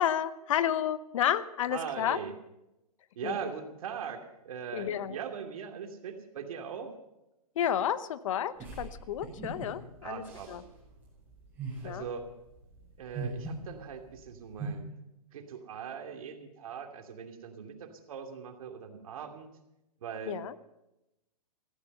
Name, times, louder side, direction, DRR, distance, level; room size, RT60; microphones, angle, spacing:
voice 1, 0.0-2.2 3.2-3.5 4.7-5.2 7.6-10.2 10.5-10.6 11.8-12.1 20.3-20.5, left 10 dB, 55° left, 15 dB, 0.8 m, -31 dB
voice 2, 1.7-2.4 3.1-7.0 10.0-10.6 11.8-12.3 13.0-14.9 15.3-19.5 20.0-20.4, right 7 dB, 60° right, 4 dB, 2.6 m, -40 dB
sound 1, 8.6-14.7, right 3 dB, 10° right, 6.9 m, -42 dB
15.5 x 15.0 x 5.4 m, 0.92 s
hypercardioid pair, 150°, 20 cm